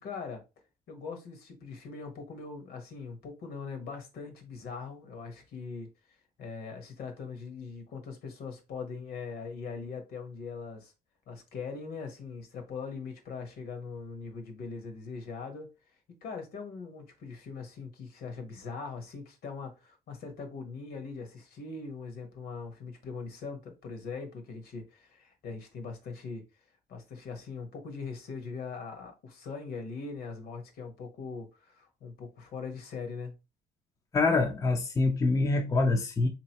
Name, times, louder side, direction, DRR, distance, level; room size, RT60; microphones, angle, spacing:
voice 1, 0.0-0.4 0.9-5.9 6.4-10.9 11.3-15.7 16.2-26.4 26.9-33.3, left 4 dB, 65° left, 1.2 m, -41 dB
voice 2, 34.1-36.3, left 3 dB, 20° left, 0.5 m, -25 dB
3.8 x 2.9 x 2.8 m
cardioid pair, 110°, 17 cm